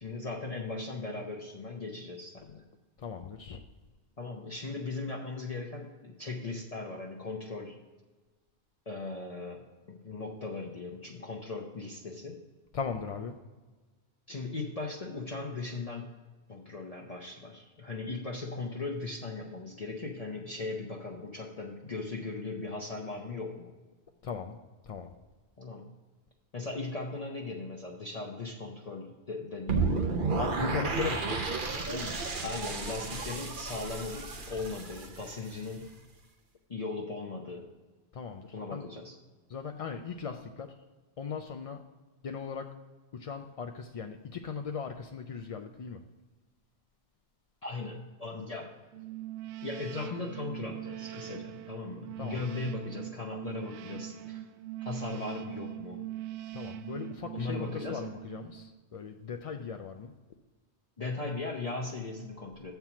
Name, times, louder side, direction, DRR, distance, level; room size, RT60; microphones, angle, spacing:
voice 1, 0.0-2.6 4.2-7.7 8.9-12.4 14.3-16.1 16.5-23.7 25.6-25.9 26.5-30.1 32.4-35.9 36.7-37.7 38.5-39.2 47.6-48.7 49.6-54.5 54.8-56.0 57.3-58.0 61.0-62.7, left 3 dB, 40° left, 0 dB, 0.8 m, -38 dB
voice 2, 3.0-3.6 12.7-13.4 24.2-24.6 24.8-25.1 30.4-31.5 31.9-32.1 38.1-38.9 39.5-40.7 41.2-41.8 42.2-42.7 43.1-46.0 52.2-52.4 56.5-60.1, left 6 dB, 55° left, 5 dB, 0.4 m, -38 dB
sound 1, 29.7-35.7, right 4 dB, 50° right, 1.0 m, -32 dB
sound 2, 48.9-58.8, right 14 dB, 90° right, 0.9 m, -42 dB
7.4 x 4.6 x 6.8 m, 1.3 s
omnidirectional pair, 1.1 m